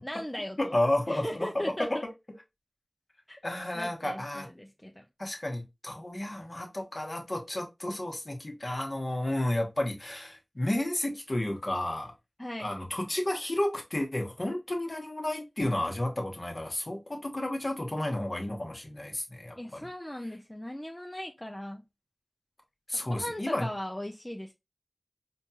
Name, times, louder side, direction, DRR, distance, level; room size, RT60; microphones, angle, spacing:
voice 1, 0.0-0.8 1.1-2.0 3.3-3.4 3.7-5.1 12.4-12.7 19.6-21.8 22.9-24.5, equal, 15° left, 0.4 m, -38 dB
voice 2, 0.6-2.0 3.4-4.5 5.2-12.1 12.6-19.9 22.9-23.7, left 1 dB, 40° left, 1.1 m, -32 dB
4.4 x 2.3 x 2.7 m
wide cardioid pair, 45°, 0 cm